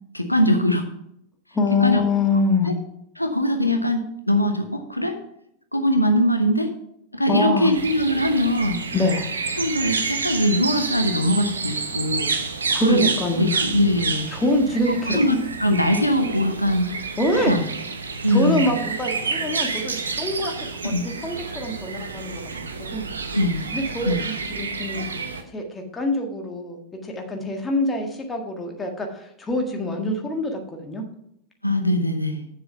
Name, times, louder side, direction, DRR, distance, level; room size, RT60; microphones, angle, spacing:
voice 1, 0.1-0.8 1.8-2.0 2.7-2.8 3.2-4.0 4.3-5.2 5.7-6.7 7.1-8.8 9.6-12.3 12.8-13.0 13.4-14.3 14.9-16.9 17.5-17.6 18.2-18.7 20.8-21.0 23.3-23.7 24.1-24.2 31.6-32.5, equal, 90° left, 6 dB, 0.8 m, -21 dB
voice 2, 1.5-2.7 7.3-7.7 8.9-9.3 12.7-13.6 14.3-15.2 17.2-17.5 18.3-22.4 22.8-23.1 23.7-25.0 25.5-31.0, left 2 dB, 15° left, 3 dB, 1.7 m, -25 dB
sound 1, 7.7-25.4, right 4 dB, 75° right, 0.9 m, -29 dB
7.6 x 6.9 x 5.6 m, 0.76 s
figure-of-eight pair, 90°, 0 cm